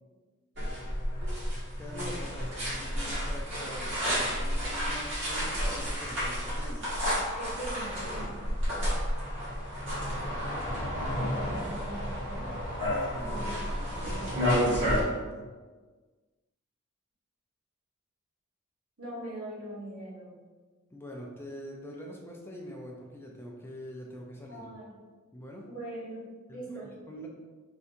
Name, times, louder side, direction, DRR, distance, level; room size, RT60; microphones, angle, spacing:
sound 1, 0.6-15.0, equal, 55° right, 1.3 m, -31 dB
voice 1, 1.8-6.9 8.5-8.9 12.9-15.5 20.9-24.7 25.3-25.7 26.5-27.3, equal, 10° left, -1 dB, 0.4 m, -44 dB
voice 2, 7.4-8.3 11.3-12.5 13.2-14.3 19.0-20.4 24.5-24.9 25.7-26.9, right 1 dB, 80° right, -7 dB, 1.3 m, -42 dB
3.4 x 2.7 x 2.6 m, 1.4 s
head